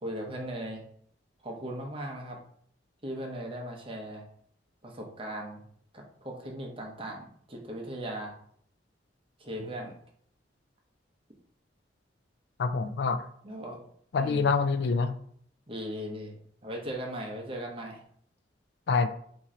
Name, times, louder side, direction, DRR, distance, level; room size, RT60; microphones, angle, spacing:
voice 1, 0.0-0.8 1.4-2.4 3.0-4.2 4.8-5.6 5.9-8.3 9.4-9.9 13.4-13.8 14.2-14.5 15.7-18.0, right 1 dB, 30° right, -1 dB, 0.9 m, -38 dB
voice 2, 12.6-13.2 14.1-15.2 18.9-19.1, left 4 dB, 65° left, 10 dB, 0.4 m, -26 dB
4.3 x 3.0 x 3.7 m, 0.62 s
head